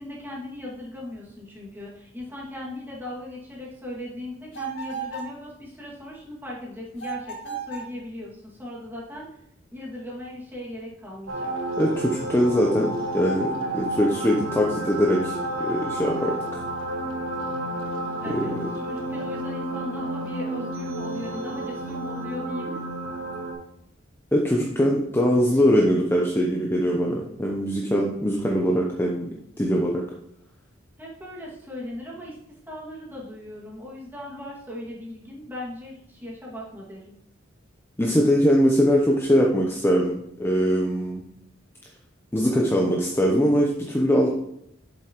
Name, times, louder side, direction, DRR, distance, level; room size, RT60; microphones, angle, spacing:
voice 1, 0.0-9.4 9.7-11.5 18.2-22.8 31.0-32.4 32.7-37.1, left 1 dB, 10° right, -5 dB, 2.1 m, -38 dB
sound 1, 4.5-5.4 7.0-7.9, right 5 dB, 70° left, 2.0 m, -34 dB
sound 2, 11.3-23.5, right 1 dB, 85° right, 1.4 m, -31 dB
voice 2, 11.8-13.5 13.7-16.4 18.3-18.6 24.3-29.3 29.6-30.0 38.0-41.2 42.3-44.3, equal, 10° left, -1 dB, 0.7 m, -22 dB
8.2 x 7.3 x 3.0 m, 0.78 s
head